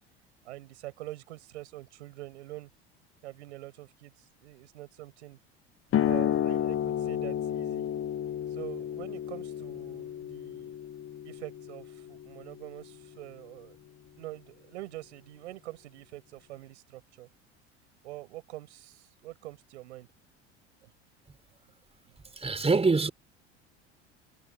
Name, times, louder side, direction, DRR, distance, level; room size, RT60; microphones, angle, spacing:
voice 1, 0.4-2.7 3.2-4.1 4.4-5.4 6.0-7.9 8.5-10.8 11.2-13.8 14.2-17.3 18.0-20.1 20.8-20.9, right 17 dB, 75° right, 7.4 m, -45 dB
sound 1, 5.9-13.1, left 10 dB, 40° left, 1.5 m, -32 dB
voice 2, 22.4-23.1, right 4 dB, 15° right, 4.1 m, -24 dB
hypercardioid pair, 70°, 34 cm